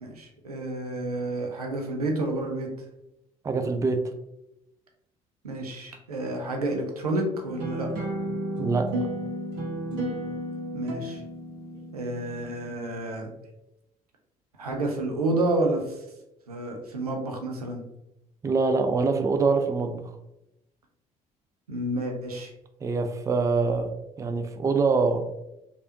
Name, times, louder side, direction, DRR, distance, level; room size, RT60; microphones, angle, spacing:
voice 1, 0.0-2.7 5.4-7.9 10.7-11.2 11.9-13.3 14.6-16.0 16.5-17.8 21.7-22.5, right 2 dB, 85° right, 2 dB, 0.5 m, -29 dB
voice 2, 3.4-4.1 8.6-8.9 18.4-20.1 22.8-23.9 24.2-25.2, right 4 dB, 15° right, 7 dB, 0.3 m, -24 dB
sound 1, 7.5-12.5, equal, 60° right, 0.9 m, -33 dB
3.2 x 2.5 x 2.6 m, 0.88 s
figure-of-eight pair, 50°, 19 cm